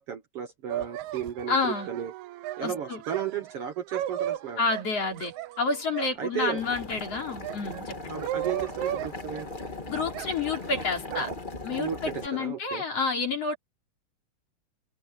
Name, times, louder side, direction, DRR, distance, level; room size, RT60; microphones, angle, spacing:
voice 1, 0.0-2.1 2.6-4.6 6.2-6.6 8.1-9.5 11.8-12.0 12.3-12.8, right 9 dB, 60° right, 1.9 m, -34 dB
sound 1, 0.7-6.7 7.1-9.7 10.1-11.3, right 12 dB, 75° right, 2.1 m, -36 dB
voice 2, 1.5-1.9 2.6-3.0 4.6-8.2 9.9-11.3 11.6-13.6, left 4 dB, 50° left, 5.0 m, -29 dB
Boiling, 6.6-12.3, left 2 dB, 25° left, 1.1 m, -39 dB
omnidirectional pair, 3.5 m